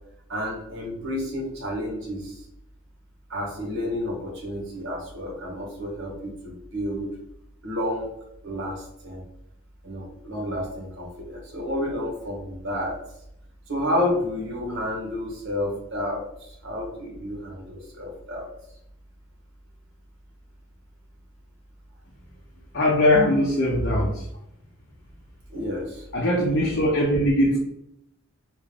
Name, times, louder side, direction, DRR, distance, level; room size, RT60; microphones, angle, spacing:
voice 1, 0.3-2.4 3.3-7.1 7.6-8.1 8.4-9.2 9.8-13.0 13.7-18.5 25.5-26.0, left 1 dB, 55° right, -2 dB, 1.3 m, -30 dB
voice 2, 22.7-24.3 26.1-27.6, left 1 dB, 50° left, -4 dB, 0.7 m, -21 dB
3.6 x 2.6 x 3.3 m, 0.78 s
head